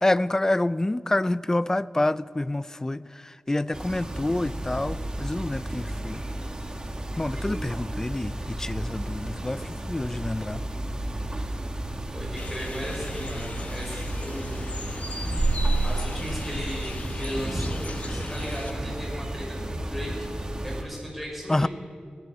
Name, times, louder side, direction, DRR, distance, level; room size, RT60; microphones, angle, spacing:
voice 1, 0.0-6.2 7.2-10.6 21.5-21.7, left 1 dB, 15° left, 17 dB, 0.3 m, -27 dB
sound 1, 3.7-20.8, right 1 dB, 25° right, 1.3 m, -32 dB
voice 2, 12.1-14.6 15.8-20.1 20.6-21.7, equal, ahead, -3 dB, 5.5 m, -36 dB
sound 2, 12.4-18.7, left 2 dB, 50° left, 1.0 m, -39 dB
17.5 x 12.0 x 6.8 m, 2.3 s
wide cardioid pair, 110°, 3 cm